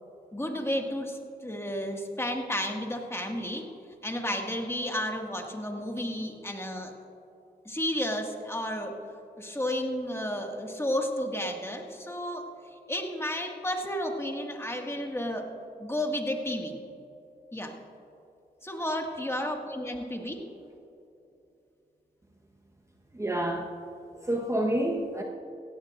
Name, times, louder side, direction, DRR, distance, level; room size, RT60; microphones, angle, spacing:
voice 1, 0.3-3.7 4.0-6.9 7.7-8.9 9.4-12.4 12.9-15.5 15.8-16.7 17.5-17.7 18.6-20.5, left 1 dB, 15° left, 2 dB, 2.0 m, -32 dB
voice 2, 23.2-23.7 24.3-25.2, right 1 dB, 15° right, 0 dB, 1.2 m, -28 dB
16.5 x 16.0 x 2.6 m, 2.8 s
cardioid pair, 60°, 17 cm